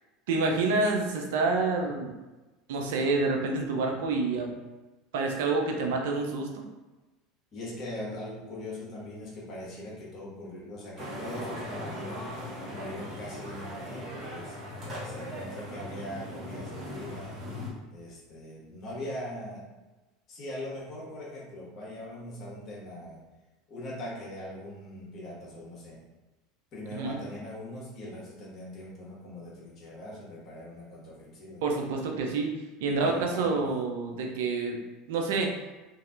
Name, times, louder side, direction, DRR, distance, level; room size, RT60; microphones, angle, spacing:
voice 1, 0.3-2.1 2.7-4.5 5.1-6.6 26.9-27.2 31.6-32.5 32.8-34.8 35.1-35.5, right 3 dB, 70° right, 1 dB, 0.5 m, -28 dB
voice 2, 7.5-12.4 12.7-14.6 15.0-17.4 17.9-19.7 20.3-23.2 23.7-26.0 26.7-31.6 32.8-33.7, left 1 dB, 45° left, -6 dB, 1.4 m, -41 dB
sound 1, 11.0-17.7, equal, 30° right, 1.2 m, -39 dB
3.0 x 2.7 x 2.5 m, 1.1 s
hypercardioid pair, 85°, 0 cm